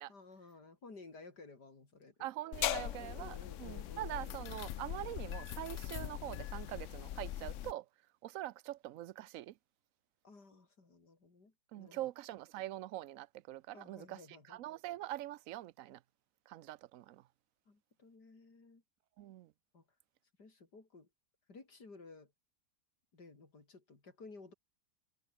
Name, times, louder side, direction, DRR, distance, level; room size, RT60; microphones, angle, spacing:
voice 1, 0.1-2.1 2.5-4.1 10.2-12.0 13.7-14.6 17.7-18.8 19.7-19.8 20.4-21.1 21.5-22.3 23.1-24.5, left 3 dB, 90° left, 4.7 m, -55 dB
voice 2, 2.2-7.9 8.2-9.6 11.7-16.0 16.5-17.3 19.2-19.5, right 14 dB, 65° right, 0.9 m, -44 dB
sound 1, 2.5-7.7, left 12 dB, 65° left, 0.8 m, -40 dB
omnidirectional pair, 1.7 m